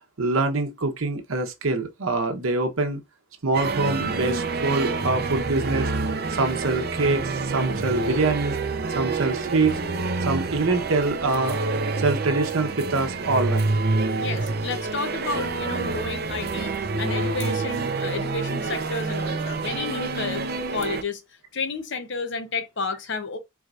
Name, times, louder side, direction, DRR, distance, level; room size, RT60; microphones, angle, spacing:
voice 1, 0.2-3.0 3.4-5.9 6.3-8.6 8.9-9.8 10.2-11.6 12.0-13.8, right 3 dB, 85° right, 1.0 m, -24 dB
sound 1, 3.5-21.0, right 3 dB, 50° right, 0.7 m, -27 dB
voice 2, 14.2-16.7 17.0-20.4 20.7-21.2 21.5-23.4, left 4 dB, 60° left, 0.8 m, -31 dB
4.7 x 3.2 x 2.5 m
head